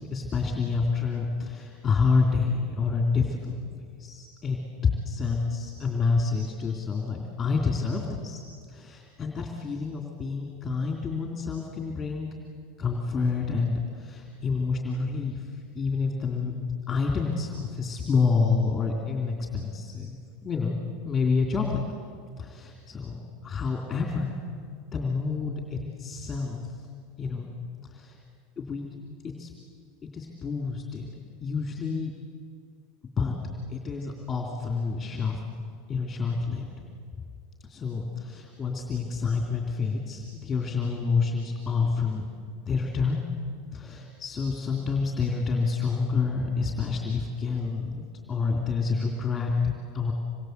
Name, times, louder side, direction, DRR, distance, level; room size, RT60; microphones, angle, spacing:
voice 1, 0.0-3.6 4.0-4.6 5.0-8.4 8.7-12.3 12.8-15.5 15.7-16.5 16.9-21.8 22.4-23.2 23.4-24.3 24.9-26.6 27.2-27.5 27.9-28.2 28.6-28.9 29.4-29.5 30.1-31.0 31.4-32.1 33.2-33.4 33.7-35.4 35.9-36.7 37.6-42.3 42.7-43.2 43.7-50.1, left 4 dB, 20° left, 1 dB, 3.1 m, -28 dB
26.5 x 22.5 x 8.2 m, 2.1 s
supercardioid pair, 145°, 0 cm